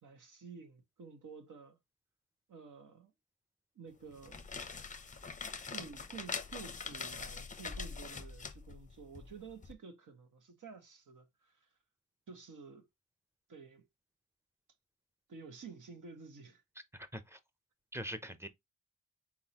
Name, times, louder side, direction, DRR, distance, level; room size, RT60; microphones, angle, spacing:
voice 1, 0.0-1.8 2.5-3.1 3.7-4.4 5.7-11.7 12.3-12.9 13.5-13.9 15.3-16.6, right 5 dB, 65° right, 1.5 m, -51 dB
sound 1, 4.1-9.7, left 5 dB, 25° left, 0.6 m, -43 dB
voice 2, 16.9-17.4 17.9-18.5, equal, 10° right, 0.8 m, -43 dB
4.5 x 3.8 x 2.9 m
cardioid pair, 115°, 33 cm